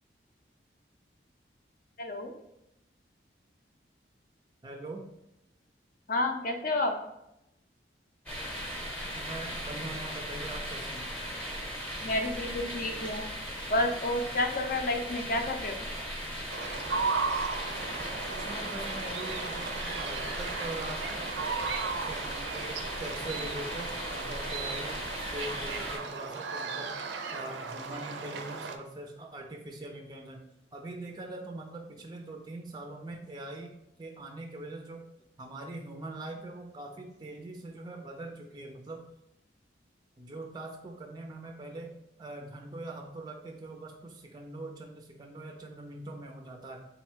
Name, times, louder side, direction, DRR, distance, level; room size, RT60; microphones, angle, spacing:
voice 1, 2.0-2.3 6.1-7.0 12.0-13.2 13.7-15.8, left 2 dB, 50° left, 4 dB, 0.5 m, -30 dB
voice 2, 4.6-5.0 9.2-11.1 18.3-21.6 22.1-25.0 25.3-26.9 27.3-35.0 35.4-39.0 40.2-46.9, right 2 dB, 25° right, 2 dB, 0.4 m, -42 dB
sound 1, 8.3-26.0, equal, 5° left, 0.7 m, -38 dB
sound 2, 16.5-28.8, right 4 dB, 80° right, 0.4 m, -36 dB
3.9 x 2.1 x 4.4 m, 0.84 s
head